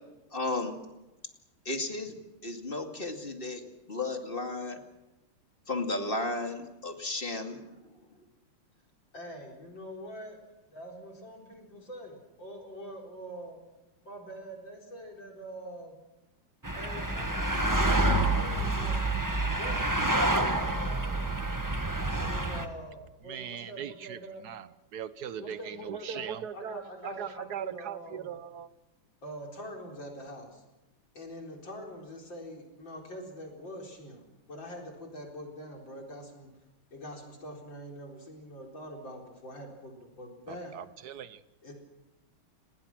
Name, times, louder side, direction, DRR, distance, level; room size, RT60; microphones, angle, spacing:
voice 1, 0.3-0.8 1.7-2.2 2.4-3.6 3.9-4.8 5.7-7.6, left 2 dB, 25° left, 4 dB, 2.5 m, -33 dB
voice 2, 9.1-10.4 10.7-13.6 14.0-16.0 16.7-19.0 19.5-20.2 20.6-21.3 22.2-24.4 25.4-28.4 29.2-30.6 31.1-36.5 36.9-40.8 41.6-41.7, equal, 55° left, 1 dB, 4.9 m, -44 dB
sound 1, 16.6-22.7, right 2 dB, 10° right, 1.3 m, -28 dB
voice 3, 23.3-24.2 24.4-24.7 24.9-28.7 40.5-41.4, right 9 dB, 55° right, 14 dB, 1.3 m, -39 dB
29.5 x 21.0 x 6.1 m, 0.99 s
omnidirectional pair, 2.4 m